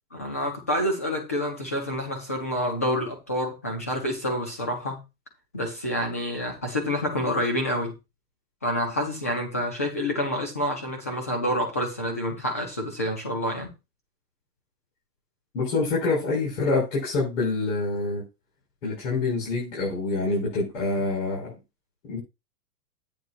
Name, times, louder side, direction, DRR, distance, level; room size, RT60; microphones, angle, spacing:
voice 1, 0.1-5.0 5.5-7.9 8.6-13.7, equal, 10° left, 0.4 m, -28 dB
voice 2, 15.5-18.2 18.8-21.5 22.1-22.2, left 3 dB, 50° left, 5.9 m, -26 dB
11.0 x 8.9 x 2.5 m
hypercardioid pair, 160°, 47 cm